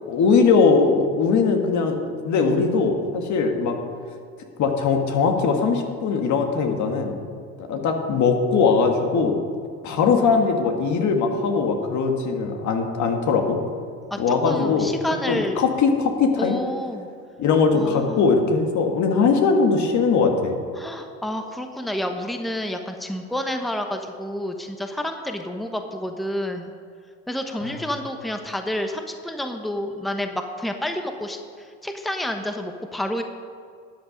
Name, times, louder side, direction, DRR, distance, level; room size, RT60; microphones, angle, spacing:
voice 1, 0.1-2.0 2.2-3.8 4.6-7.2 7.7-9.4 9.8-13.6 14.2-14.9 15.3-16.6 17.4-20.6 27.6-27.8, left 5 dB, 60° left, 4 dB, 1.8 m, -20 dB
voice 2, 14.4-15.6 16.4-17.1 17.7-18.2 20.8-26.7 27.3-33.2, left 1 dB, ahead, 5 dB, 1.0 m, -29 dB
12.5 x 8.7 x 5.2 m, 2.2 s
supercardioid pair, 75°, 32 cm